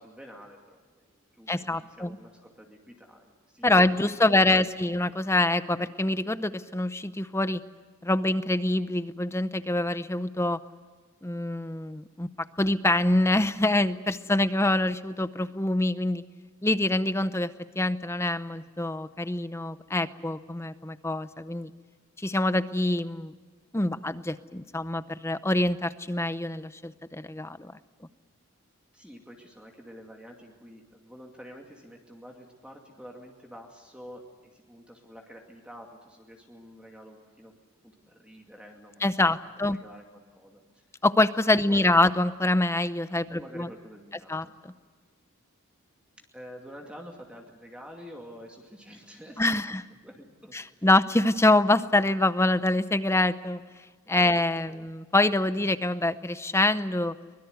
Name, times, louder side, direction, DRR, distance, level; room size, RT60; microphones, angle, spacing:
voice 1, 0.0-4.9 28.9-37.5 37.8-39.3 39.7-40.8 41.6-42.1 43.3-44.4 46.3-49.7 50.0-50.9 54.1-54.4 54.6-54.9, equal, 5° right, 0 dB, 2.3 m, -48 dB
voice 2, 1.5-2.2 3.6-7.6 8.0-10.6 11.2-12.3 12.6-16.2 16.6-21.7 22.2-23.3 23.7-27.7 39.0-39.8 41.0-43.7 44.3-44.7 49.4-49.8 50.5-53.6 54.1-57.1, left 2 dB, 10° left, 13 dB, 0.7 m, -25 dB
24.0 x 22.0 x 8.0 m, 1.5 s
head